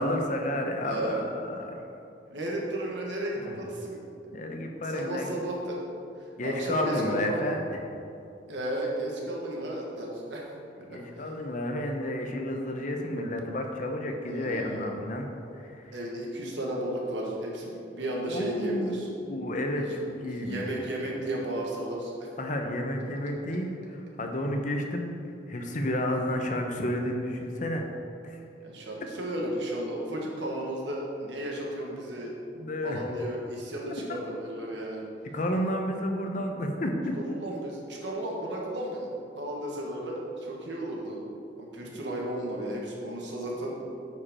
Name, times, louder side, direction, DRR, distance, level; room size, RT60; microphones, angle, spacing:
voice 1, 0.0-1.8 3.4-3.6 4.3-5.4 6.4-7.8 10.9-15.3 15.5-16.0 18.3-18.9 19.2-20.7 22.4-25.1 25.5-27.9 28.2-28.4 32.5-33.0 34.1-34.2 35.3-37.2 41.8-42.0, left 1 dB, 45° left, 3 dB, 0.8 m, -31 dB
voice 2, 0.8-1.2 2.3-4.0 4.9-5.8 6.2-7.5 8.5-10.5 14.3-14.8 15.9-19.1 19.9-20.0 20.4-22.3 28.6-32.3 32.8-35.0 37.2-39.1 39.3-41.2 41.6-43.9, right 1 dB, 75° right, -2 dB, 1.6 m, -34 dB
9.3 x 5.1 x 4.3 m, 2.6 s
head